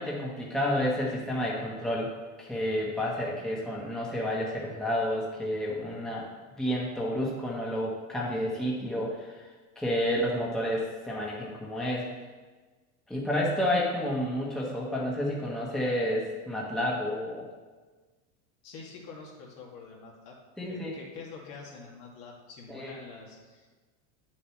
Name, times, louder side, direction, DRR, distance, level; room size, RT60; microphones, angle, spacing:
voice 1, 0.0-2.1 2.4-6.3 6.6-9.4 9.7-12.1 13.1-17.4 20.6-21.0 22.7-22.9, left 1 dB, ahead, -4 dB, 1.5 m, -30 dB
voice 2, 18.6-20.3 20.7-23.7, left 4 dB, 60° left, -2 dB, 2.3 m, -46 dB
8.4 x 7.0 x 3.2 m, 1.3 s
supercardioid pair, 110°, 42 cm